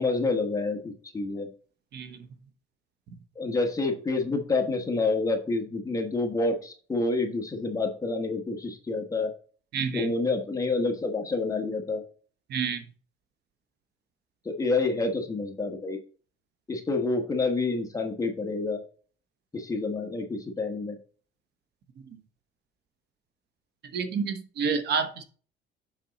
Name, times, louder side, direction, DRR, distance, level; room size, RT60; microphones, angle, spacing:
voice 1, 0.0-1.5 3.3-9.3 9.9-12.0 14.4-16.0 16.7-18.8 19.5-21.0, left 3 dB, 15° left, 1.3 m, -28 dB
voice 2, 9.7-10.1 12.5-12.8 23.9-25.2, right 6 dB, 55° right, 1.1 m, -29 dB
7.4 x 5.3 x 4.0 m
cardioid pair, 140°, 20 cm